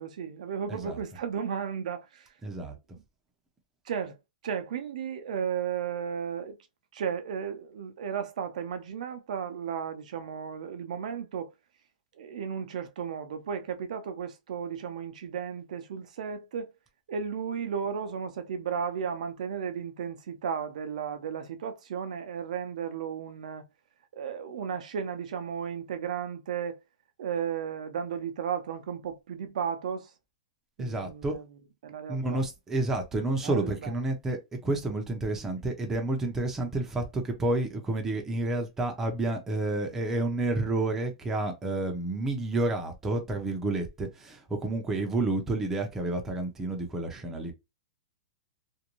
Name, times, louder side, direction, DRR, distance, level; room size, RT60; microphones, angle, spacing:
voice 1, 0.0-2.3 3.9-4.2 4.4-6.6 6.9-11.5 12.1-16.7 17.1-23.6 24.1-26.8 27.2-30.1 30.8-31.5 31.8-32.4 33.4-33.9, right 7 dB, 70° right, 0.5 m, -34 dB
voice 2, 2.4-2.7 30.8-31.3 32.1-47.5, right 2 dB, 10° right, 0.5 m, -30 dB
2.5 x 2.2 x 2.9 m
hypercardioid pair, 155°, 4 cm